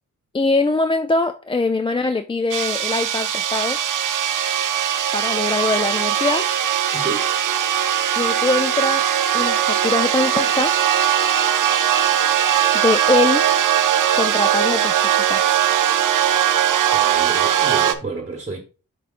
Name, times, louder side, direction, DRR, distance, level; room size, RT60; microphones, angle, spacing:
voice 1, 0.3-3.8 5.1-6.5 8.2-9.0 9.3-10.7 12.7-13.5 14.1-15.6, left 3 dB, 15° left, 0.3 m, -22 dB
sound 1, 2.5-17.9, right 10 dB, 70° right, 0.7 m, -20 dB
voice 2, 6.9-7.2 16.9-18.6, right 3 dB, 20° right, 1.2 m, -30 dB
7.8 x 5.3 x 2.5 m
wide cardioid pair, 115°, 33 cm